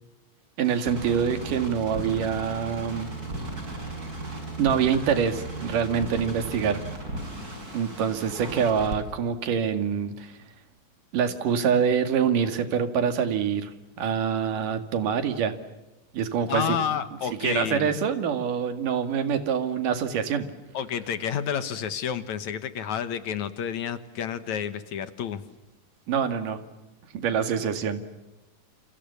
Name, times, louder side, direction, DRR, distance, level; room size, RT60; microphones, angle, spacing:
sound 1, 0.6-9.0, right 2 dB, 25° right, 6.7 m, -36 dB
voice 1, 0.6-3.1 4.6-6.8 7.7-10.4 11.1-13.7 14.0-15.5 16.1-16.8 17.4-20.5 26.1-26.6 27.1-28.0, right 7 dB, 70° right, 9 dB, 3.6 m, -25 dB
voice 2, 16.5-17.9 20.7-25.4, left 8 dB, 65° left, 12 dB, 2.4 m, -30 dB
29.0 x 27.5 x 7.1 m, 1.0 s
omnidirectional pair, 4.0 m